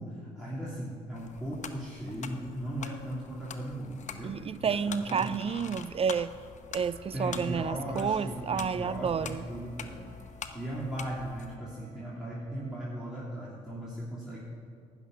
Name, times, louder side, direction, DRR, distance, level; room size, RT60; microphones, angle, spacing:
voice 1, 0.0-4.4 4.6-5.4 7.1-10.0 10.5-14.4, right 1 dB, 5° right, -7 dB, 3.0 m, -37 dB
sound 1, 1.1-11.6, left 6 dB, 50° left, 0.9 m, -45 dB
voice 2, 4.2-6.3 6.7-9.4, right 6 dB, 40° right, 17 dB, 0.4 m, -30 dB
Wind instrument woodwind instrument, 6.7-13.1, left 1 dB, 70° right, 1.3 m, -58 dB
12.0 x 6.1 x 9.2 m, 2.2 s
supercardioid pair, 55°, 15 cm